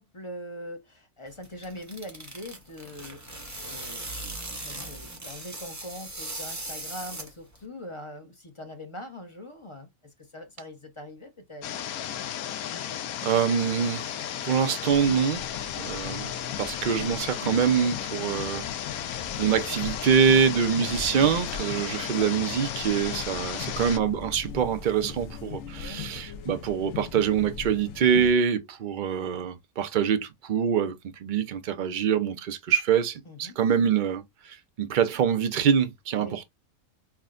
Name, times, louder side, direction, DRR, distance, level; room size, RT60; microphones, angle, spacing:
voice 1, 0.0-9.9 10.2-11.9 23.5-23.9 25.7-26.0 33.3-33.6 36.2-36.4, left 1 dB, 30° left, 0.7 m, -42 dB
sound 1, 1.3-7.6, right 2 dB, 15° right, 0.6 m, -39 dB
sound 2, 11.6-24.0, left 10 dB, 85° left, 1.1 m, -34 dB
voice 2, 13.2-14.2 14.4-15.4 15.8-16.3 16.6-18.7 19.1-36.5, right 7 dB, 75° right, 0.4 m, -25 dB
sound 3, 14.9-28.3, left 7 dB, 65° left, 0.8 m, -40 dB
5.8 x 2.2 x 2.4 m
omnidirectional pair, 1.5 m